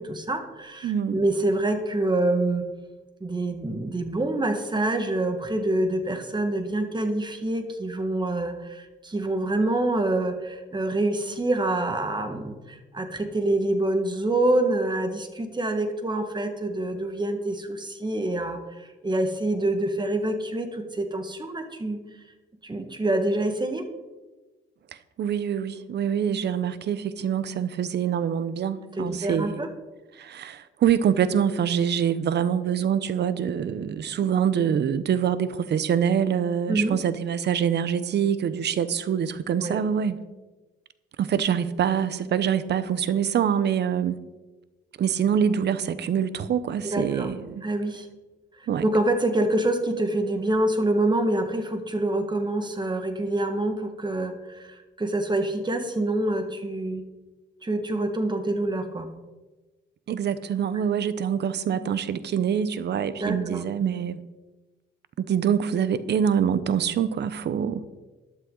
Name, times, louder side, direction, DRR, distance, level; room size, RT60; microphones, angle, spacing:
voice 1, 0.0-2.7 3.2-22.0 22.6-23.8 29.0-29.7 36.7-37.0 39.6-39.8 46.8-47.3 47.6-48.1 48.6-57.0 57.6-59.1 63.2-63.6, right 2 dB, 20° right, 6 dB, 1.7 m, -26 dB
voice 2, 0.8-1.2 25.2-29.6 30.2-40.2 41.2-44.2 45.0-47.6 48.7-48.8 60.1-64.2 65.2-67.8, right 8 dB, 60° right, 14 dB, 0.8 m, -25 dB
13.0 x 11.5 x 3.9 m, 1.2 s
cardioid pair, 90°, 20 cm